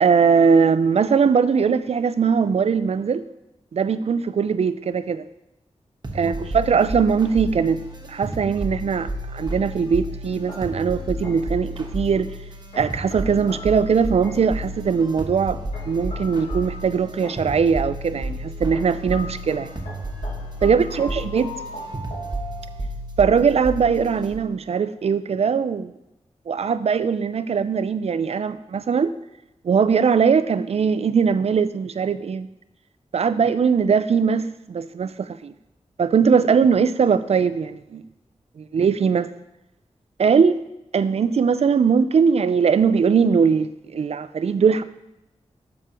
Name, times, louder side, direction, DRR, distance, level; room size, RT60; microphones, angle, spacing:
voice 1, 0.0-3.2 3.7-5.3 6.1-7.8 8.1-12.3 12.7-15.6 15.9-19.7 20.6-21.5 23.2-25.9 26.5-29.1 29.6-32.5 33.1-35.5 36.0-38.0 38.6-39.3 40.2-40.6 40.9-44.8, right 6 dB, 60° right, 13 dB, 0.4 m, -20 dB
sound 1, 6.0-24.3, right 1 dB, 40° right, 1.1 m, -32 dB
sound 2, 10.5-11.7 12.7-14.7 15.7-17.7 18.7-23.0, left 1 dB, 70° left, 1.4 m, -40 dB
11.5 x 4.9 x 2.9 m, 0.90 s
wide cardioid pair, 85°, 12 cm